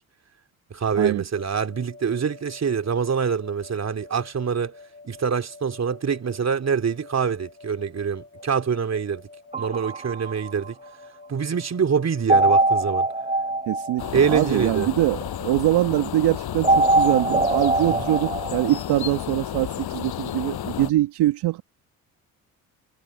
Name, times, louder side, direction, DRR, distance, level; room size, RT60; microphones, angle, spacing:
voice 1, 0.7-4.8 5.0-9.2 9.6-10.8 11.3-13.1 14.1-14.9 17.9-18.0, right 6 dB, 40° right, 3.1 m, -25 dB
sound 1, 1.3-20.0, left 3 dB, 25° left, 7.9 m, -48 dB
sound 2, 9.5-11.3 12.3-14.8 16.6-18.8, right 2 dB, 15° right, 2.9 m, -22 dB
voice 2, 13.7-21.6, right 15 dB, 70° right, 1.9 m, -23 dB
sound 3, 14.0-20.9, left 12 dB, 60° left, 5.6 m, -32 dB
hypercardioid pair, 60°, 42 cm